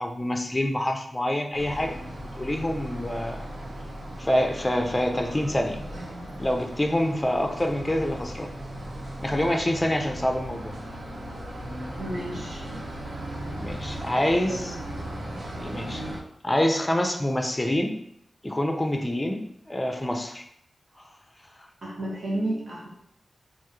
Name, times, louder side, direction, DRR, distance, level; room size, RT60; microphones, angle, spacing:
voice 1, 0.0-1.9 2.4-3.4 4.2-5.8 6.4-8.5 9.2-10.7 13.6-14.7 15.6-16.0 16.4-17.9 18.4-20.4 21.0-21.1, left 1 dB, 20° left, 4 dB, 0.7 m, -26 dB
sound 1, 1.5-16.2, right 1 dB, 90° right, 1.4 m, -37 dB
voice 2, 12.0-12.6 14.4-14.7 21.8-22.9, right 1 dB, 65° right, -5 dB, 1.7 m, -32 dB
4.3 x 3.7 x 3.3 m, 0.72 s
cardioid pair, 55°, 0 cm